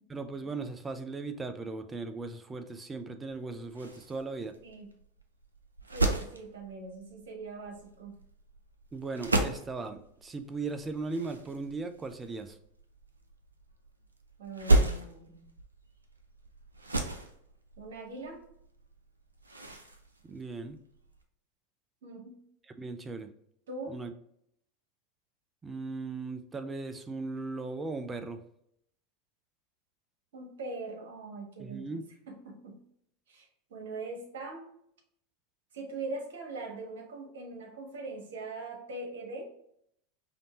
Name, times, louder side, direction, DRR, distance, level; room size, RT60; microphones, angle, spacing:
voice 1, 0.1-4.5 8.9-12.6 20.2-20.8 22.8-23.3 23.9-24.1 25.6-28.4 31.6-32.0, right 3 dB, 20° right, 8 dB, 0.6 m, -38 dB
sound 1, 3.3-21.2, right 2 dB, 85° right, 0.6 m, -34 dB
voice 2, 5.9-8.1 14.4-15.5 17.8-18.4 22.0-22.4 23.7-24.0 30.3-31.9 32.3-32.8 33.3-34.7 35.7-39.5, right 3 dB, 65° right, 2 dB, 1.3 m, -41 dB
5.1 x 2.8 x 3.0 m, 0.72 s
figure-of-eight pair, 85°, 0 cm